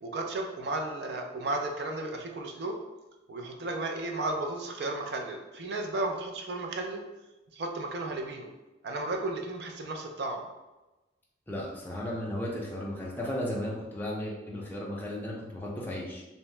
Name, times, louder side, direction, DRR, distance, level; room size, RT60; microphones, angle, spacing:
voice 1, 0.0-2.8 3.3-7.0 7.5-8.5 8.8-10.5, right 2 dB, 55° right, 2 dB, 0.4 m, -34 dB
voice 2, 11.5-16.2, left 1 dB, 10° left, -4 dB, 0.4 m, -35 dB
2.7 x 2.0 x 3.1 m, 1.1 s
head